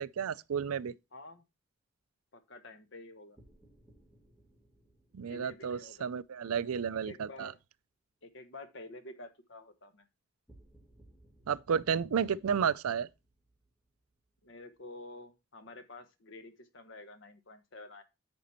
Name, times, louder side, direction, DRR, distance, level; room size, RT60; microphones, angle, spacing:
voice 1, 0.0-0.9 5.1-7.5 11.5-13.1, right 7 dB, 80° right, 0.4 m, -32 dB
voice 2, 1.1-1.4 2.3-3.4 5.2-6.1 6.9-7.6 8.2-10.0 14.4-18.0, left 2 dB, 55° left, 1.2 m, -49 dB
sound 1, 3.4-7.6 10.5-15.1, right 1 dB, ahead, 2.4 m, -64 dB
9.1 x 5.2 x 4.1 m
head